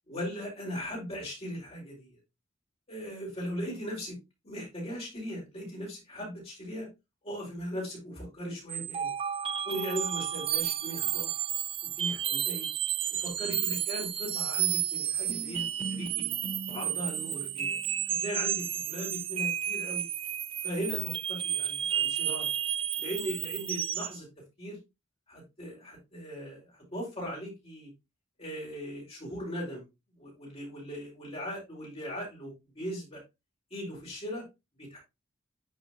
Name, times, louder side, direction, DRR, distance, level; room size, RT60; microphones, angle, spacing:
voice 1, 0.1-2.2 2.9-4.2 4.4-6.9 7.2-9.1 9.7-11.3 11.8-12.7 13.2-16.3 16.7-17.8 18.2-20.1 20.6-22.5 23.0-24.3 24.6-24.8 25.3-27.9 28.4-29.8 30.2-33.2 33.7-34.4 34.8-35.0, equal, 35° left, -3 dB, 5.1 m, -38 dB
sound 1, 8.7-24.2, right 10 dB, 30° right, 0.3 m, -32 dB
10.0 x 6.2 x 2.9 m, 0.23 s
head